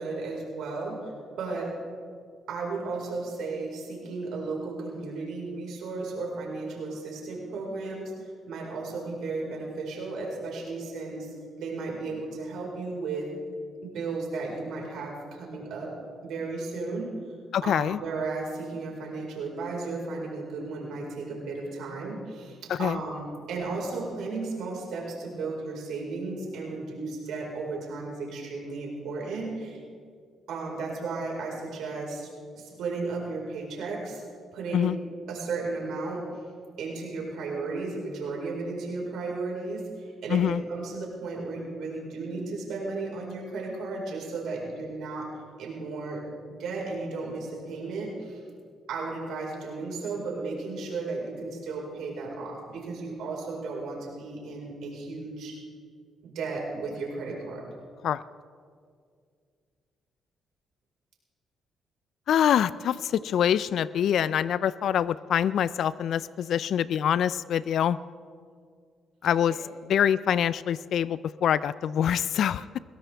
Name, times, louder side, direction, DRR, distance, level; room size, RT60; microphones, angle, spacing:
voice 1, 0.0-1.7 2.5-8.1 8.5-13.3 13.8-15.9 16.2-17.1 17.6-29.8 30.5-32.3 32.5-34.2 34.5-34.9 35.3-36.2 36.8-39.8 40.2-45.3 45.6-48.4 48.9-55.6 56.2-57.7 69.5-69.6, right 3 dB, 80° right, -2 dB, 4.6 m, -34 dB
voice 2, 17.5-18.0 22.7-23.0 34.7-35.0 40.3-40.6 58.0-58.2 62.3-68.0 69.2-69.5 69.9-72.8, left 9 dB, 70° left, 18 dB, 0.3 m, -25 dB
21.5 x 16.5 x 3.4 m, 2.1 s
cardioid pair, 90°, 0 cm